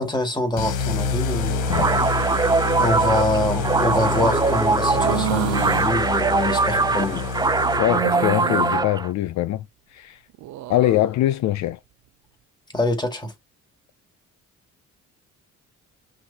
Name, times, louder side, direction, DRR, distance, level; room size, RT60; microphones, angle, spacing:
voice 1, 0.0-2.0 2.8-7.3 12.7-13.3, left 1 dB, 15° left, 1.8 m, -25 dB
sound 1, 0.6-8.2, left 4 dB, 90° left, 1.1 m, -27 dB
sound 2, 1.7-9.1, right 4 dB, 15° right, 0.3 m, -22 dB
sound 3, 4.9-5.9 7.9-8.8 10.3-11.0, right 15 dB, 70° right, 0.5 m, -28 dB
voice 2, 7.8-9.6 9.9-10.2 10.7-11.8, left 14 dB, 65° left, 0.4 m, -22 dB
6.1 x 2.6 x 2.8 m
cardioid pair, 90°, 30 cm